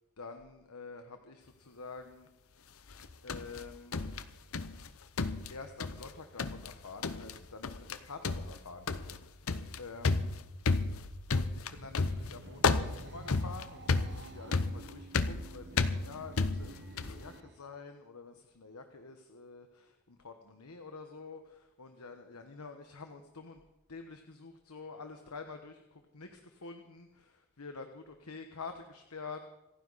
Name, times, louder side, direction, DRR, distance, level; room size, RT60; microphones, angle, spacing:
voice 1, 0.2-2.3 3.2-4.1 5.5-10.4 11.3-23.6 23.9-29.4, left 4 dB, 90° left, 6 dB, 1.2 m, -48 dB
sound 1, 2.9-4.9 5.2-6.1 6.4-6.7 7.0-7.4 7.6-8.0 8.2-17.2, left 4 dB, 70° left, 0.8 m, -32 dB
sound 2, 11.5-17.6, right 2 dB, 50° right, 1.1 m, -51 dB
27.5 x 9.8 x 4.1 m, 1.0 s
head